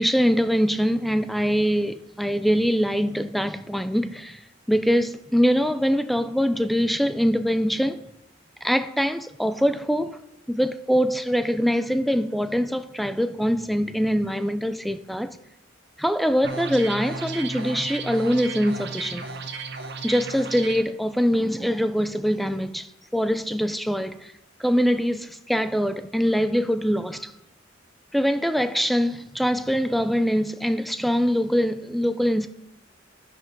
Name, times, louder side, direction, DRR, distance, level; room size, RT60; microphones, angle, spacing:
voice 1, 0.0-4.4 4.7-8.0 8.6-10.2 10.5-15.4 16.0-19.3 20.0-22.9 23.1-24.3 24.6-27.3 28.1-32.5, equal, ahead, 0.5 m, -23 dB
sound 1, 16.4-20.8, right 4 dB, 60° right, 0.9 m, -34 dB
11.0 x 6.3 x 5.3 m
head